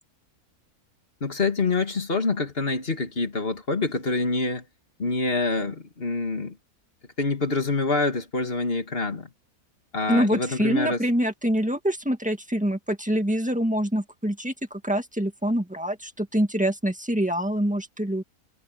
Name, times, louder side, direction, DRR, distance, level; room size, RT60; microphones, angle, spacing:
voice 1, 1.2-4.6 5.0-6.6 7.2-9.3 9.9-11.0, left 3 dB, 40° left, 2.3 m, -26 dB
voice 2, 10.1-18.2, equal, 5° right, 1.8 m, -25 dB
omnidirectional pair, 1.6 m